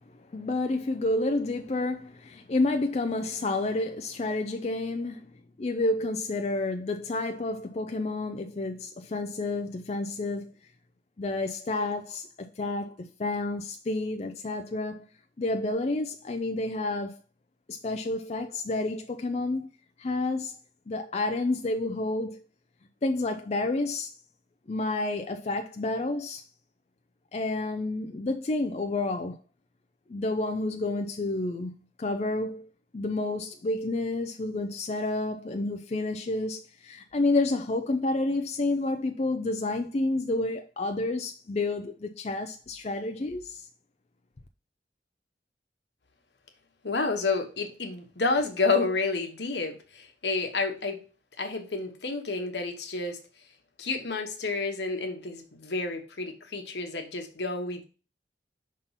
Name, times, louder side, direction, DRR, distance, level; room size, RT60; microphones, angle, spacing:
voice 1, 0.1-5.3 5.6-10.5 11.2-15.1 15.4-17.2 17.7-19.7 20.0-20.6 20.9-22.4 23.0-24.1 24.7-26.4 27.3-29.4 30.1-43.7, left 2 dB, 35° left, 0.4 m, -30 dB
voice 2, 46.8-51.0 51.4-53.2 53.8-57.8, left 3 dB, 75° left, 1.1 m, -30 dB
5.5 x 3.7 x 5.6 m
head